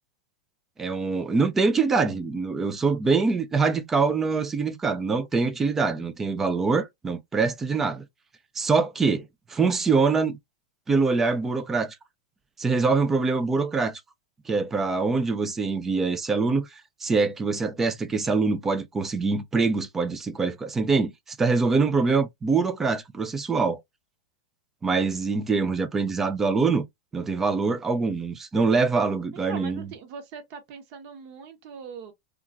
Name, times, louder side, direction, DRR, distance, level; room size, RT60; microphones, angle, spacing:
voice 1, 0.8-8.0 8.6-10.4 10.9-12.0 12.6-14.0 14.5-23.8 24.8-26.8 27.1-29.8, right 4 dB, 15° right, 0.4 m, -24 dB
voice 2, 29.3-32.1, right 6 dB, 45° right, 0.9 m, -41 dB
2.8 x 2.3 x 2.4 m
supercardioid pair, 145°, 2 cm